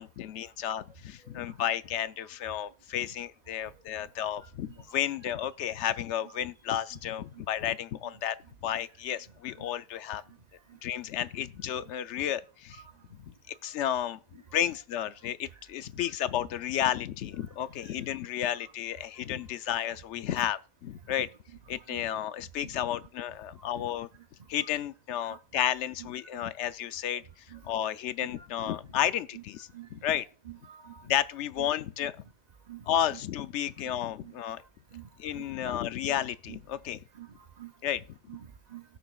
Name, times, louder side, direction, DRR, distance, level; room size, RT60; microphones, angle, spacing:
voice 1, 0.0-10.2 10.8-12.8 13.2-21.3 21.7-24.1 24.5-30.3 31.0-32.1 32.9-34.6 35.2-37.0 37.8-38.2, left 11 dB, 90° left, 0.9 m, -32 dB
voice 2, 28.2-28.7 29.3-29.4 29.7-30.2 30.4-31.1 31.6-31.7 32.7-32.9 33.1-33.2 33.8-33.9 34.2-34.3 34.9-35.1 35.3-35.8 36.5-36.6 37.1-37.3 37.6-37.7 38.3-38.8, right 11 dB, 45° right, 0.7 m, -47 dB
17.5 x 6.8 x 2.3 m
omnidirectional pair, 1.2 m